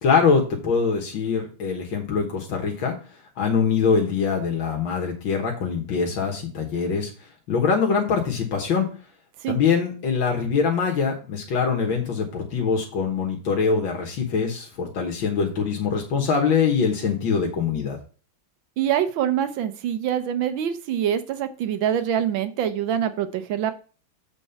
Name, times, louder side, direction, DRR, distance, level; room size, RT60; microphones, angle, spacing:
voice 1, 0.0-3.0 3.4-7.1 7.5-8.9 9.5-18.0, left 5 dB, 85° left, 1 dB, 2.1 m, -23 dB
voice 2, 18.8-23.7, right 9 dB, 90° right, 11 dB, 1.7 m, -25 dB
7.2 x 4.6 x 5.7 m, 0.38 s
omnidirectional pair, 2.1 m